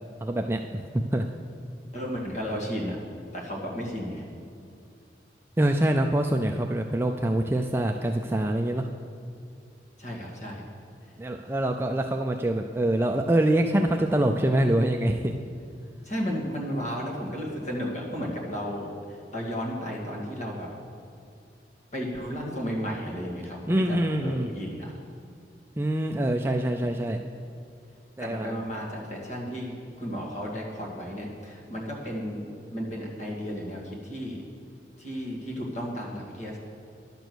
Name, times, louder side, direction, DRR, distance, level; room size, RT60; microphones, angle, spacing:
voice 1, 0.2-0.8 1.1-1.3 5.6-8.9 11.2-15.3 23.7-24.5 25.8-27.2 28.2-28.6, right 1 dB, 15° right, 3 dB, 0.3 m, -25 dB
voice 2, 1.9-3.0 3.3-4.2 10.0-10.6 16.0-20.7 21.9-24.9 28.2-32.4 32.7-34.4 35.0-36.6, equal, 40° left, -2 dB, 2.0 m, -33 dB
11.5 x 6.8 x 6.2 m, 2.5 s
head